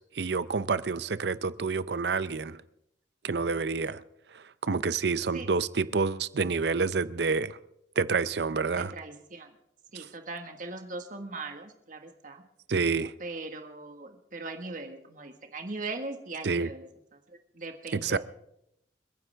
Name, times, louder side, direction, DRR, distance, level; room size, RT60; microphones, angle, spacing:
voice 1, 0.0-2.6 3.2-4.0 4.3-7.6 8.0-8.9 9.9-10.1 12.7-13.1 16.4-16.7 17.9-18.2, right 4 dB, 65° right, 0.6 m, -28 dB
voice 2, 8.7-9.5 9.9-12.4 13.2-18.2, right 3 dB, 45° right, 1.6 m, -40 dB
29.5 x 9.9 x 3.5 m
head